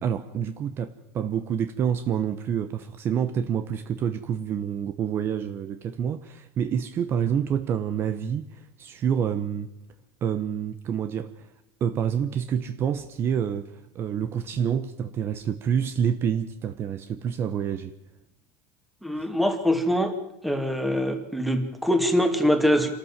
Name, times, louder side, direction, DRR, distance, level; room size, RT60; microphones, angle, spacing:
voice 1, 0.0-9.7 10.2-11.5 11.8-17.9 19.1-19.3, right 8 dB, 35° right, 1.0 m, -28 dB
voice 2, 19.0-20.1 20.4-22.9, equal, ahead, 2.4 m, -23 dB
26.5 x 13.5 x 7.5 m
supercardioid pair, 140°, 7 cm